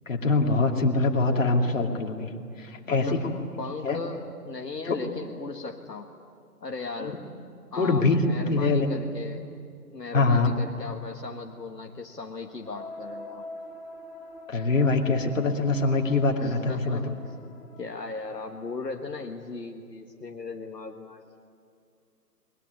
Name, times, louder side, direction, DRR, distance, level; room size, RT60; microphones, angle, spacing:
voice 1, 0.1-2.3 2.6-3.3 3.8-4.0 4.8-5.0 7.8-8.9 10.1-10.6 14.5-17.0, left 3 dB, 50° left, 2 dB, 2.7 m, -24 dB
voice 2, 2.8-6.1 6.6-7.2 7.7-9.5 9.9-13.5 16.3-17.2 17.8-21.4, left 3 dB, 75° left, 3 dB, 1.6 m, -37 dB
sound 1, 12.6-18.5, left 1 dB, 35° left, 4.2 m, -44 dB
22.0 x 21.5 x 9.7 m, 2.3 s
figure-of-eight pair, 140°, 49 cm